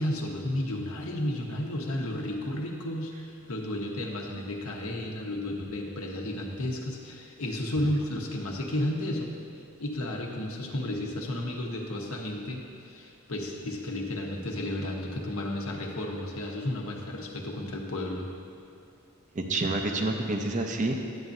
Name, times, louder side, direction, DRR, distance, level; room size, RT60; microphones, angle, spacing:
voice 1, 0.0-9.3 9.8-18.3, left 1 dB, 75° left, 0 dB, 1.0 m, -32 dB
voice 2, 19.3-21.0, right 2 dB, 35° right, 3 dB, 0.6 m, -28 dB
11.0 x 8.5 x 2.6 m, 2.5 s
head